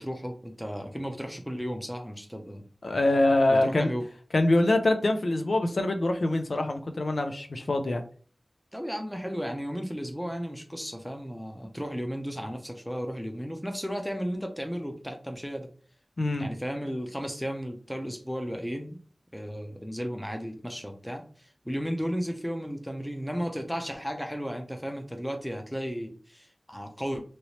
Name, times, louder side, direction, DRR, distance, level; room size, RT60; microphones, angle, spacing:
voice 1, 0.0-2.6 3.5-4.0 8.7-15.7 16.4-19.0 19.3-27.2, equal, 5° left, 4 dB, 0.6 m, -34 dB
voice 2, 2.8-3.9 4.3-8.0 16.2-16.5, left 2 dB, 70° left, 5 dB, 0.4 m, -24 dB
3.0 x 2.9 x 2.8 m, 0.42 s
wide cardioid pair, 70°, 0 cm